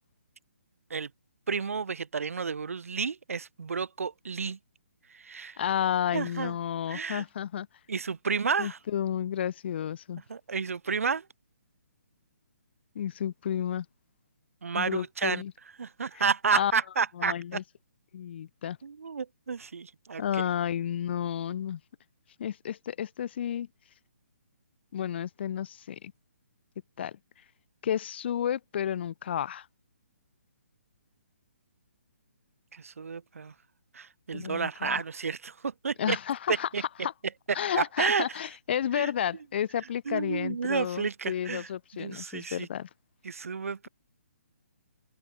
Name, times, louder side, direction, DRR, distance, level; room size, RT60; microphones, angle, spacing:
voice 1, 1.5-4.6 5.1-5.6 6.1-6.5 6.9-7.2 7.9-8.8 10.3-11.2 14.6-15.4 15.8-17.3 18.8-20.5 32.7-33.5 33.9-36.2 36.7-36.8 37.7-38.2 38.9-39.1 40.1-41.7 41.9-42.7 43.2-43.9, right 5 dB, 70° right, 0.8 m, -31 dB
voice 2, 5.6-7.7 8.6-10.2 12.9-13.9 14.7-15.5 16.5-16.7 17.2-17.6 18.1-18.8 20.2-21.8 22.4-23.7 24.9-26.1 27.0-27.2 27.8-29.7 34.3-35.0 36.0-37.1 37.5-42.9, left 9 dB, 45° left, 0.6 m, -31 dB
figure-of-eight pair, 140°, 8 cm